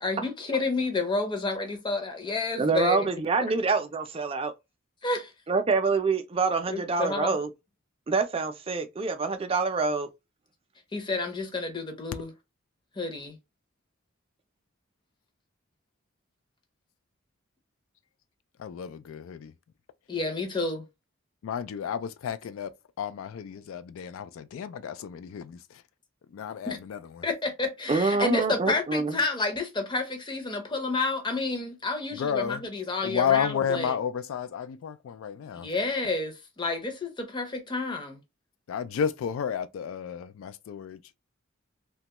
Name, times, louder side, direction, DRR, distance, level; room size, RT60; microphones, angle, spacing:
voice 1, 0.0-3.1 5.0-5.3 6.7-7.4 10.9-12.3 13.0-13.4 20.1-20.9 26.7-26.8 27.2-34.0 35.6-38.2, left 3 dB, 20° left, 0.6 m, -30 dB
voice 2, 2.6-4.5 5.5-7.5 8.1-10.1 27.9-29.2, right 4 dB, 25° right, 0.4 m, -26 dB
voice 3, 18.6-19.5 21.4-22.7 23.0-25.8 26.3-27.2 32.1-32.6 33.0-35.7 38.7-41.0, left 8 dB, 75° left, 0.3 m, -31 dB
3.0 x 2.2 x 2.8 m
head